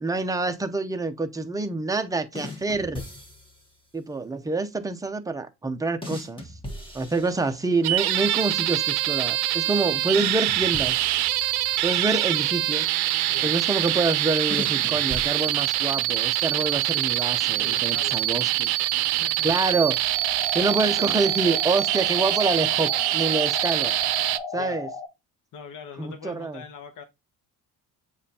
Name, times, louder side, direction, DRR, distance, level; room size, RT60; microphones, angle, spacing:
voice 1, 0.0-3.0 3.9-6.5 6.9-11.1 11.8-12.9 13.4-18.7 19.4-20.0 20.5-23.9 24.5-24.9 26.0-26.6, right 3 dB, 10° right, 0.6 m, -27 dB
sound 1, 2.4-3.8 6.0-8.0 10.1-12.3 14.5-16.1, left 2 dB, 15° left, 1.3 m, -39 dB
sound 2, 7.8-24.4, right 15 dB, 85° right, 0.5 m, -24 dB
voice 2, 17.5-18.3 19.1-19.6 24.5-24.8 25.5-27.0, left 7 dB, 55° left, 0.9 m, -42 dB
sound 3, 20.0-25.1, left 4 dB, 85° left, 1.1 m, -35 dB
7.1 x 2.5 x 2.8 m
cardioid pair, 120°, 38 cm